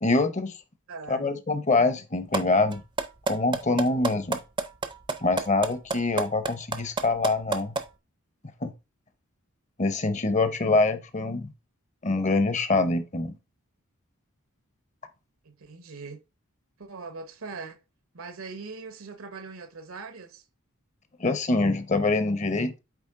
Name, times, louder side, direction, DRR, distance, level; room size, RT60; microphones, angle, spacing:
voice 1, 0.0-0.5 1.1-2.8 3.3-4.4 5.2-7.7 8.6-8.7 9.8-11.5 12.0-13.4 21.2-22.8, left 3 dB, 35° left, 0.7 m, -25 dB
voice 2, 0.9-1.3 15.4-16.2 16.8-17.8 18.1-20.4, right 4 dB, 75° right, 1.0 m, -41 dB
sound 1, 2.3-2.4 2.7-7.8, right 3 dB, 20° right, 0.5 m, -27 dB
8.4 x 3.4 x 3.6 m
head